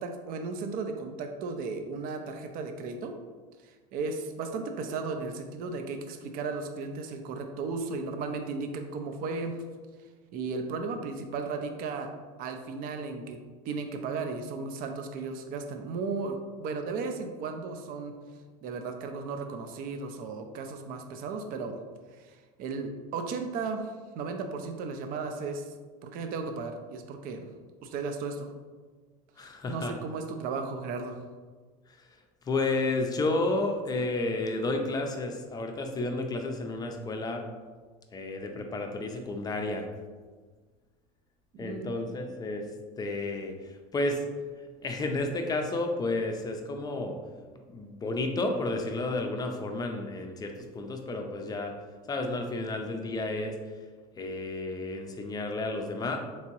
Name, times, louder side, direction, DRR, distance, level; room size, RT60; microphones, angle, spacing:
voice 1, 0.0-3.1 3.6-9.6 10.3-12.1 12.4-13.4 13.6-18.2 18.6-21.8 22.1-23.9 24.2-25.7 26.0-27.5 27.8-28.5 29.4-31.2 41.5-41.9, right 4 dB, 50° right, 6 dB, 0.5 m, -35 dB
voice 2, 29.4-29.9 32.0-32.1 32.4-37.4 38.1-39.9 41.6-42.7 43.0-44.2 44.8-47.2 47.7-51.7 52.1-53.6 54.2-56.2, left 2 dB, 20° left, 4 dB, 0.5 m, -31 dB
3.4 x 2.9 x 2.9 m, 1.4 s
supercardioid pair, 110°, 19 cm